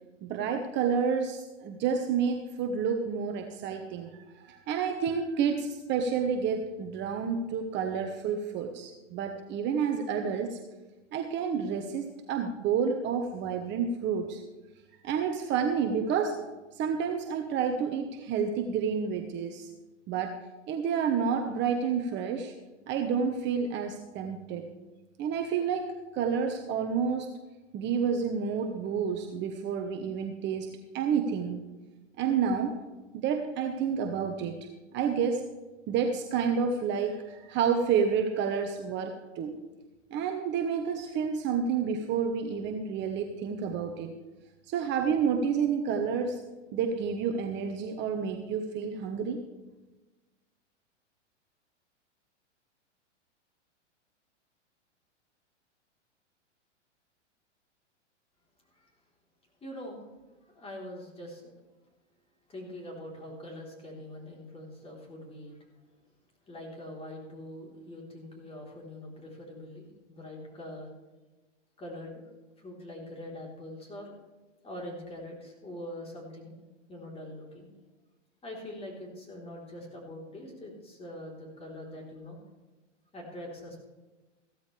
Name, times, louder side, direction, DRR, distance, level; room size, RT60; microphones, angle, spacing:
voice 1, 0.2-10.6 11.1-14.4 15.0-16.4 16.7-19.7 20.1-20.4 20.7-22.5 22.9-24.6 25.2-27.3 27.7-31.6 32.2-32.8 33.1-34.7 34.9-35.4 35.9-39.5 40.1-44.1 44.7-46.4 46.7-49.4, right 6 dB, 30° right, 4 dB, 1.1 m, -29 dB
voice 2, 59.6-60.1 60.5-61.5 62.5-65.6 66.5-70.9 71.8-72.3 72.6-74.1 74.6-76.6 76.9-77.7 78.4-82.4 83.1-83.8, left 1 dB, 15° left, -1 dB, 3.8 m, -43 dB
15.5 x 13.0 x 3.4 m, 1.2 s
hypercardioid pair, 115°, 37 cm